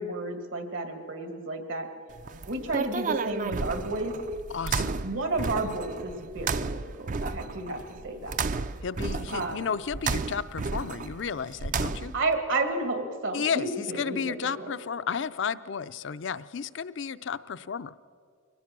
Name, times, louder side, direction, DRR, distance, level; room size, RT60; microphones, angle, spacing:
voice 1, 0.0-1.9 2.5-4.1 5.0-8.4 9.3-9.7 11.8-11.9 12.1-14.3 14.6-14.7, right 2 dB, 75° right, 6 dB, 2.3 m, -31 dB
sound 1, 2.1-12.3, right 4 dB, 40° right, 0.4 m, -33 dB
voice 2, 4.5-5.0 8.8-12.1 13.3-17.9, left 6 dB, 60° left, 14 dB, 0.5 m, -33 dB
23.0 x 19.0 x 6.1 m, 2.2 s
head